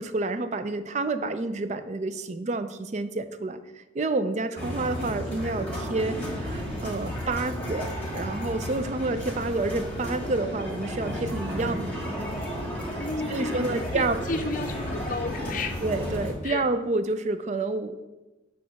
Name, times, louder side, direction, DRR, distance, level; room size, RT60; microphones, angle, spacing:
voice 1, 0.0-7.9 8.1-11.9 12.9-14.2 15.8-18.1, right 2 dB, 35° right, 10 dB, 0.4 m, -29 dB
sound 1, 4.6-16.3, equal, 5° left, 1.5 m, -33 dB
voice 2, 13.0-15.8 16.4-16.6, left 2 dB, 40° left, 7 dB, 0.6 m, -33 dB
8.3 x 2.9 x 6.1 m, 1.1 s
head